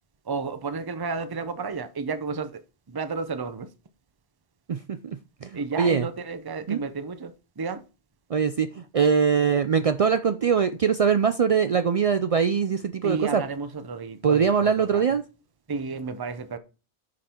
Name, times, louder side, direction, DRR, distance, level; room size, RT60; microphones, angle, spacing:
voice 1, 0.3-2.6 2.9-3.7 5.5-7.8 13.0-15.0 15.7-16.6, right 4 dB, 25° right, 0.6 m, -32 dB
voice 2, 4.7-6.1 6.7-6.8 8.3-13.4 14.2-15.2, right 6 dB, 65° right, 0.3 m, -22 dB
9.5 x 5.3 x 4.4 m
omnidirectional pair, 1.2 m